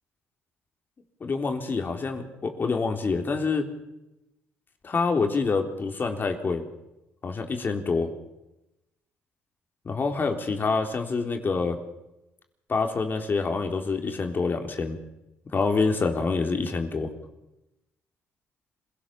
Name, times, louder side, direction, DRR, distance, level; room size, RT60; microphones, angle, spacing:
voice 1, 1.2-3.7 4.8-6.6 7.2-8.1 9.9-11.8 12.7-15.0 15.5-17.1, left 4 dB, 40° left, 4 dB, 3.9 m, -26 dB
26.0 x 17.0 x 7.3 m, 0.94 s
cardioid pair, 80°, 5 cm